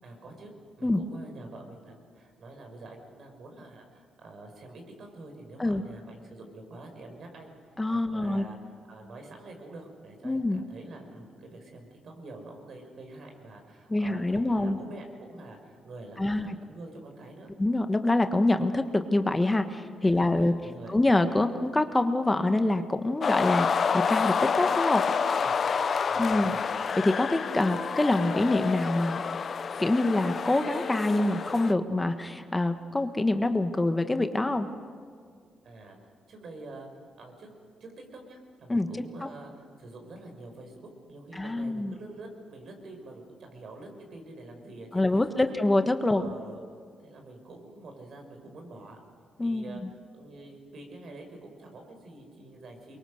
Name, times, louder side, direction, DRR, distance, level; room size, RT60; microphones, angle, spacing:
voice 1, 0.0-7.5 7.9-8.6 8.9-17.5 20.0-21.0 25.4-25.6 26.1-26.7 35.6-36.9 37.2-37.5 37.8-45.4 46.1-46.6 47.0-49.0 49.4-49.8 50.1-53.0, right 2 dB, 65° right, 3 dB, 5.9 m, -46 dB
voice 2, 7.8-8.5 10.2-10.6 13.9-14.8 16.2-16.6 17.6-20.5 20.9-25.0 26.2-26.6 26.9-29.2 29.8-34.7 38.7-38.9 41.3-41.9 44.9-46.3 49.4-49.7, left 2 dB, 20° left, 8 dB, 1.4 m, -25 dB
sound 1, 23.2-31.7, left 6 dB, 55° left, 0.9 m, -28 dB
23.5 x 23.0 x 6.6 m, 2.1 s
supercardioid pair, 65°, 0 cm